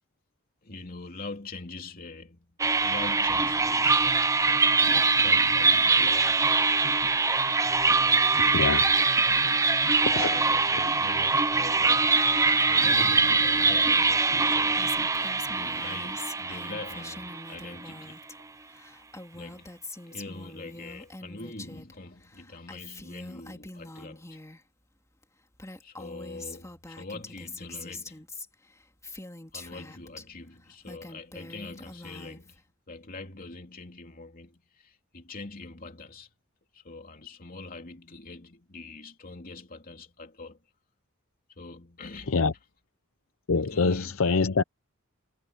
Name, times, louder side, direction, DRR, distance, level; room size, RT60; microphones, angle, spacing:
voice 1, 0.6-4.1 4.8-6.4 9.9-12.3 12.7-15.0 15.5-18.2 19.3-24.4 25.8-28.2 29.5-36.3 36.7-40.6 41.5-42.4 43.6-44.2, left 3 dB, 45° left, 2.8 m, -43 dB
sound 1, 2.6-17.8, right 4 dB, 15° right, 0.7 m, -23 dB
voice 2, 8.3-9.2 10.2-10.3 42.3-42.5 43.5-44.6, left 4 dB, 75° left, 0.7 m, -25 dB
Female speech woman speaking, 14.7-18.3 18.6-21.9 22.2-24.6 25.2-25.3 25.5-30.2 30.7-32.6, left 2 dB, 15° left, 3.0 m, -44 dB
head